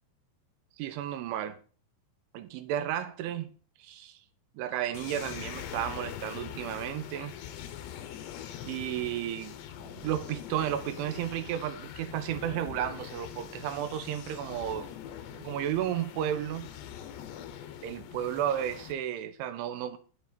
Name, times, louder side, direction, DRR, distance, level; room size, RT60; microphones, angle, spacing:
voice 1, 0.8-1.6 2.3-4.2 4.6-7.3 8.7-14.9 15.3-16.7 17.8-20.0, right 11 dB, 90° right, 3.4 m, -33 dB
sound 1, 4.9-18.9, left 10 dB, 75° left, 3.0 m, -43 dB
10.5 x 8.1 x 5.2 m
omnidirectional pair, 5.3 m